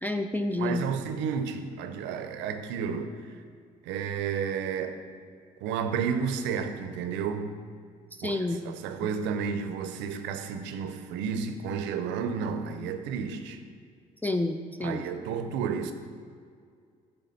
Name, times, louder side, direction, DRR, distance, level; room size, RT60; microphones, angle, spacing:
voice 1, 0.0-0.8 8.2-8.7 9.0-9.1 14.2-15.0, left 2 dB, 10° left, 4 dB, 0.4 m, -29 dB
voice 2, 0.6-3.2 3.9-5.0 5.6-7.5 8.2-8.4 8.6-13.6 14.8-15.9, right 6 dB, 80° right, 9 dB, 0.5 m, -31 dB
8.5 x 3.4 x 5.4 m, 2.1 s
supercardioid pair, 60°, 18 cm